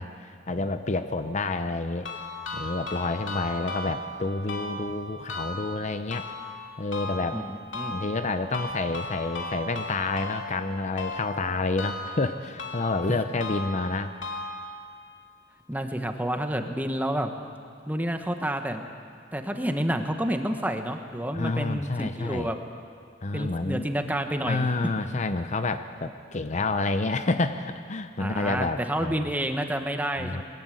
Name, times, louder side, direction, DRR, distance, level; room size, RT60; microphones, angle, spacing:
voice 1, 0.0-2.1 2.5-6.3 6.8-7.4 7.9-14.1 21.3-22.5 23.2-23.9 24.4-29.3 30.2-30.4, left 3 dB, 40° left, 9 dB, 0.7 m, -29 dB
sound 1, 2.0-15.0, left 2 dB, 85° left, 2.5 m, -37 dB
voice 2, 7.3-8.0 15.7-17.3 17.9-18.8 19.3-22.6 23.3-24.7 28.2-30.4, right 1 dB, 10° right, 6 dB, 1.2 m, -29 dB
21.0 x 15.0 x 9.1 m, 2.3 s
head